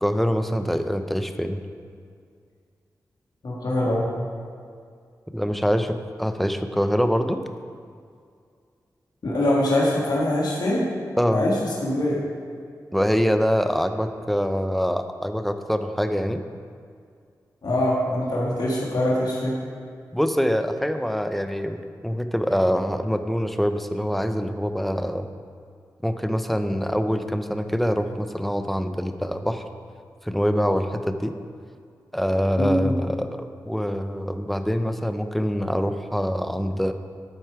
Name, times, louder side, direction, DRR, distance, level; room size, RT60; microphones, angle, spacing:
voice 1, 0.0-1.6 5.3-7.4 11.2-11.4 12.9-16.4 20.1-25.3 26.0-29.6 30.2-31.3 32.1-36.9, equal, ahead, 8 dB, 0.7 m, -24 dB
voice 2, 3.4-4.1 9.2-10.8 11.3-11.5 11.8-12.2 17.6-19.5 32.6-32.9, left 1 dB, 70° left, -5 dB, 1.8 m, -23 dB
12.0 x 4.6 x 4.8 m, 2.2 s
cardioid pair, 40°, 7 cm